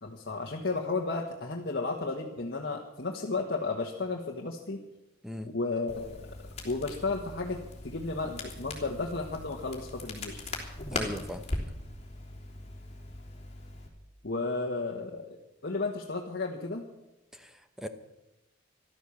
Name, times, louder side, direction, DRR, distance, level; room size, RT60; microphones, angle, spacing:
voice 1, 0.0-4.8 5.4-6.3 6.6-10.4 14.2-15.4 15.6-16.8, left 3 dB, 55° left, 0 dB, 1.4 m, -33 dB
Crackle, 5.9-13.9, left 2 dB, 30° left, 3.2 m, -40 dB
voice 2, 10.9-11.4 17.3-17.9, left 1 dB, 5° right, 8 dB, 0.9 m, -38 dB
14.5 x 12.5 x 7.2 m, 0.96 s
head